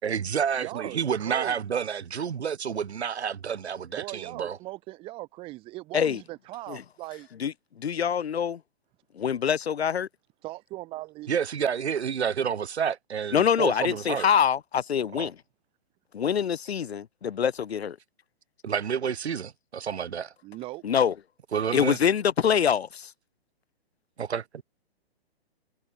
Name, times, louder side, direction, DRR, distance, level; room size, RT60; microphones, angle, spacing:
voice 1, 0.0-4.6 11.3-14.3 15.1-15.3 18.6-20.3 21.5-22.0 24.2-24.6, right 7 dB, 85° right, 3.1 m, -29 dB
voice 2, 0.6-1.6 3.9-7.3 10.4-11.3 20.4-20.8, right 19 dB, 15° right, 7.4 m, -39 dB
voice 3, 7.8-8.6 9.2-10.1 13.3-15.3 16.1-18.0 20.8-21.1 21.7-23.1, left 8 dB, 75° left, 2.3 m, -25 dB
hypercardioid pair, 175°, 32 cm